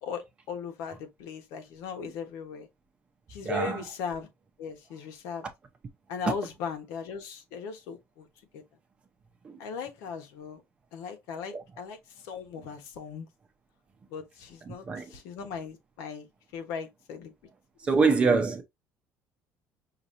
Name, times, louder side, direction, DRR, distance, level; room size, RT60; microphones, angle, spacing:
voice 1, 0.0-2.7 3.3-4.3 4.6-5.5 6.1-8.3 8.5-8.6 9.6-10.6 10.9-12.0 12.2-13.3 14.1-17.3 17.8-17.9, left 6 dB, 70° left, 1.2 m, -38 dB
voice 2, 3.4-3.8 9.4-9.6 11.5-11.6 14.7-15.1 17.8-18.6, right 4 dB, 20° right, 0.7 m, -25 dB
5.9 x 2.8 x 2.6 m
cardioid pair, 175°, 5 cm